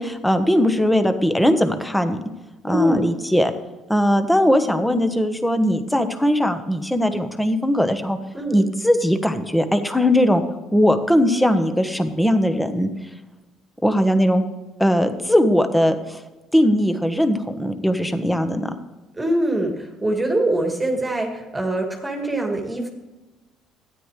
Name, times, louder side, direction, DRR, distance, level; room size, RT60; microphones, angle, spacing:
voice 1, 0.0-2.2 2.6-3.5 3.9-8.2 8.5-10.4 10.7-12.9 13.8-14.4 14.8-16.2 16.5-18.7, equal, 5° left, 8 dB, 1.1 m, -19 dB
voice 2, 2.7-3.1 8.3-8.6 19.2-22.9, right 1 dB, 15° right, 2 dB, 1.9 m, -23 dB
13.0 x 9.8 x 3.3 m, 1.1 s
cardioid pair, 100°, 0 cm